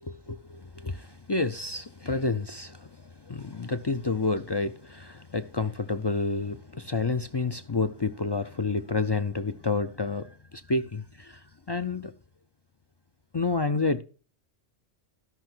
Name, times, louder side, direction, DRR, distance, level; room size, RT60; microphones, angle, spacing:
voice 1, 0.1-12.1 13.3-14.0, left 3 dB, 45° left, 0.3 m, -29 dB
14.0 x 5.6 x 6.1 m
omnidirectional pair, 1.1 m